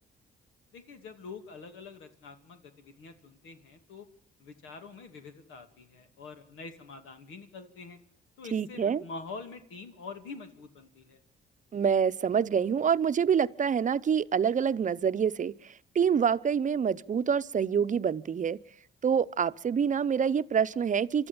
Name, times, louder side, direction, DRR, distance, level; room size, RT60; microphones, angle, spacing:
voice 1, 0.7-4.1 4.4-8.0 8.4-11.2, left 4 dB, 85° left, 2.5 m, -45 dB
voice 2, 8.5-9.0 11.7-18.6 19.0-21.3, right 7 dB, 40° right, 0.8 m, -26 dB
27.0 x 12.5 x 8.7 m
cardioid pair, 90°, 20 cm